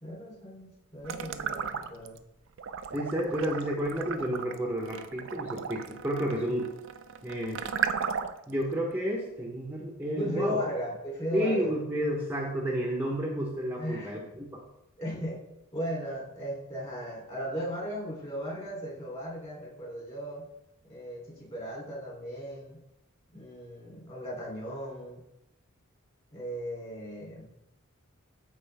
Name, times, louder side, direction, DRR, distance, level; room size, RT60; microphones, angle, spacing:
voice 1, 0.0-2.2 10.1-11.7 13.8-14.1 15.0-15.5 15.7-20.5 20.9-22.8 23.3-25.2 26.3-27.5, equal, 30° left, -3 dB, 3.1 m, -36 dB
sound 1, 1.0-2.2 2.6-8.5, right 7 dB, 60° right, 0.5 m, -35 dB
voice 2, 2.9-6.7 7.2-7.7 8.5-10.6 11.3-14.6, equal, 10° right, -2 dB, 1.0 m, -31 dB
12.5 x 4.5 x 3.4 m, 0.85 s
head